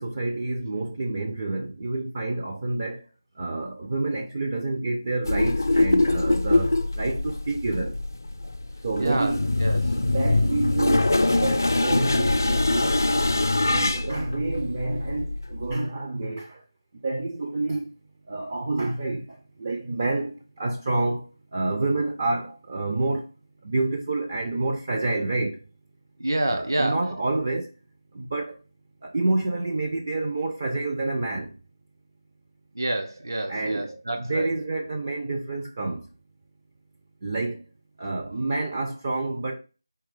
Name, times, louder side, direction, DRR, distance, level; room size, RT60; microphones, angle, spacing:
voice 1, 0.0-3.1 3.3-8.0 8.8-9.5 9.9-13.0 13.6-16.6 17.0-17.9 18.3-23.3 23.6-25.6 26.5-27.7 28.1-28.6 29.0-31.5 33.5-36.1 37.2-37.6 38.0-39.6, right 2 dB, 30° right, 0.5 m, -28 dB
sound 1, 5.3-15.7, left 2 dB, 55° left, 0.4 m, -23 dB
voice 2, 9.0-9.3 9.6-10.0 14.0-14.1 26.2-27.1 32.7-34.5, right 1 dB, 60° right, 0.7 m, -28 dB
4.6 x 3.1 x 3.4 m
figure-of-eight pair, 165°, 2 cm